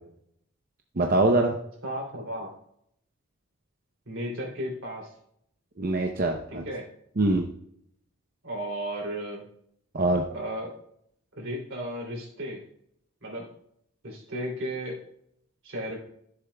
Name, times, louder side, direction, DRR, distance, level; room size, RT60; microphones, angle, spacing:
voice 1, 1.0-1.6 5.8-6.6 7.2-7.5 9.9-10.2, right 2 dB, 45° right, 2 dB, 0.6 m, -23 dB
voice 2, 1.8-2.5 4.1-5.1 6.5-6.9 8.4-9.4 10.3-10.8 11.4-12.6 13.2-13.5 14.0-15.0 15.6-16.0, equal, 75° right, -1 dB, 2.9 m, -34 dB
13.0 x 7.0 x 2.2 m, 0.71 s
head